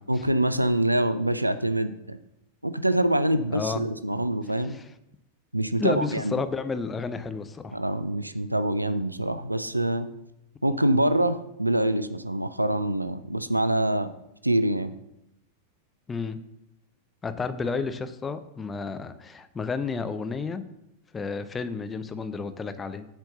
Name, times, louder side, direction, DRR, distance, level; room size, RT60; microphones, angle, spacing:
voice 1, 0.1-2.2 2.6-4.8 5.5-6.3 7.7-10.1 10.6-14.1 14.4-14.9, right 1 dB, 85° right, 13 dB, 0.4 m, -25 dB
voice 2, 3.5-3.8 4.7-4.8 5.8-7.8 16.1-16.4 17.2-20.6 21.1-23.1, left 4 dB, 15° left, 10 dB, 0.6 m, -31 dB
7.6 x 4.5 x 6.8 m, 0.84 s
figure-of-eight pair, 90°, 0 cm